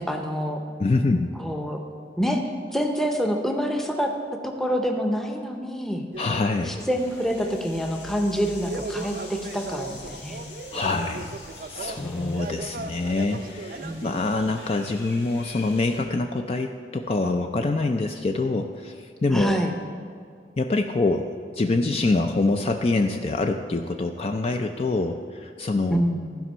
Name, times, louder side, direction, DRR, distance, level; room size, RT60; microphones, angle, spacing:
voice 1, 0.0-0.6 1.4-1.8 2.2-2.4 2.7-4.1 4.4-6.0 6.6-10.4 12.0-12.4 13.8-13.9 19.3-19.7 25.9-26.3, equal, ahead, 3 dB, 0.7 m, -26 dB
voice 2, 0.8-1.3 6.2-6.8 10.7-11.4 11.7-19.6 20.6-26.0, left 3 dB, 35° left, 5 dB, 0.3 m, -25 dB
sound 1, 6.1-14.3, right 3 dB, 50° right, 0.4 m, -38 dB
sound 2, 6.8-16.0, left 3 dB, 85° left, 1.8 m, -45 dB
14.5 x 5.1 x 5.5 m, 2.2 s
head